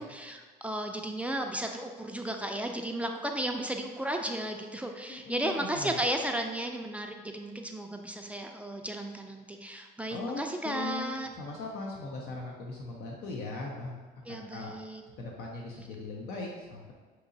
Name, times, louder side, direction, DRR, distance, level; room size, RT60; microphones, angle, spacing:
voice 1, 0.0-11.3 14.3-15.0, right 1 dB, 10° right, 3 dB, 0.3 m, -34 dB
voice 2, 5.1-5.9 10.1-13.9 14.3-14.7 15.2-16.9, left 3 dB, 70° left, -1 dB, 0.7 m, -39 dB
6.1 x 2.8 x 2.7 m, 1.4 s
cardioid pair, 110°, 17 cm